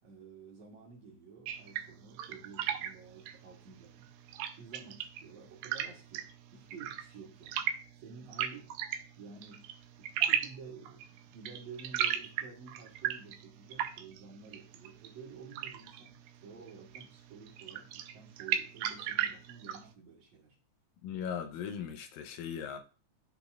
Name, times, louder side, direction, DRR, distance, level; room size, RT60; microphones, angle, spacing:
voice 1, 0.0-4.1 4.6-8.7 9.2-20.6, right 5 dB, 55° right, 2.2 m, -51 dB
sound 1, 1.5-19.9, right 10 dB, 90° right, 2.3 m, -38 dB
voice 2, 21.0-22.8, left 8 dB, 85° left, 2.4 m, -38 dB
12.0 x 4.1 x 2.3 m
omnidirectional pair, 4.0 m